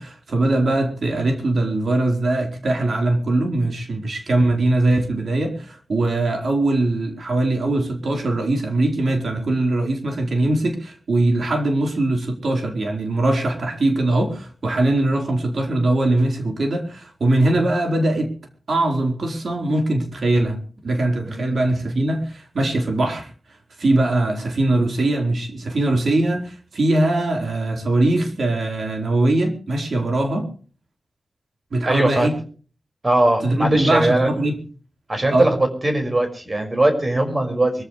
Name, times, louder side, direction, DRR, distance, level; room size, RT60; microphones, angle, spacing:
voice 1, 0.0-18.3 18.7-20.6 20.8-23.3 23.8-30.5 31.7-32.4 33.4-34.6 35.3-35.5, right 2 dB, 80° right, 4.4 m, -21 dB
voice 2, 21.2-21.6 31.9-32.3 33.0-34.3 35.1-35.6 35.8-37.8, right 1 dB, 35° right, 5.7 m, -20 dB
24.0 x 15.0 x 3.3 m
wide cardioid pair, 90°, 0 cm